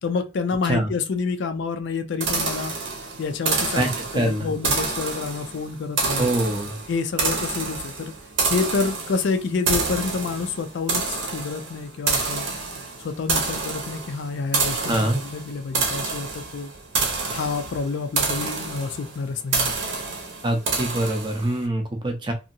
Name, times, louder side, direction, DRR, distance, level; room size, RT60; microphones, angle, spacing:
voice 1, 0.0-2.7 3.2-3.9 4.1-6.3 6.9-8.1 8.5-12.5 13.0-16.7 17.3-19.7, left 4 dB, 60° left, 0.4 m, -28 dB
sound 1, 2.2-21.6, right 4 dB, 60° right, 0.8 m, -28 dB
voice 2, 3.8-4.5 6.2-6.7 14.9-15.2 20.4-22.3, right 1 dB, 25° right, 0.6 m, -24 dB
2.7 x 2.7 x 2.6 m
head